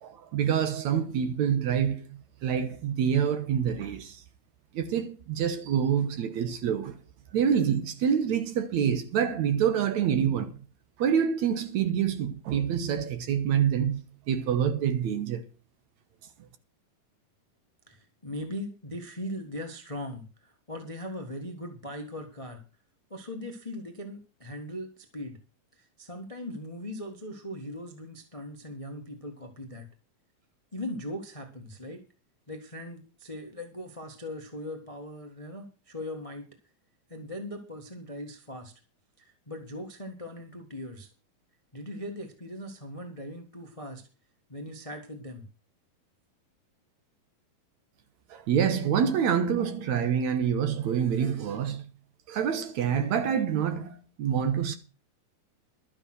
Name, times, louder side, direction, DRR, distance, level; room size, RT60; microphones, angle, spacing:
voice 1, 0.0-2.0 2.4-4.2 4.7-6.9 7.3-10.5 11.0-14.0 14.3-15.4 48.3-51.9 52.3-54.8, right 8 dB, 65° right, 2.2 m, -26 dB
voice 2, 17.9-22.6 23.1-25.4 25.8-29.9 30.7-32.0 32.5-36.5 37.1-38.7 39.2-41.1 41.7-44.0 44.5-45.5, left 1 dB, 50° left, 0.4 m, -39 dB
12.5 x 8.7 x 6.2 m
omnidirectional pair, 4.0 m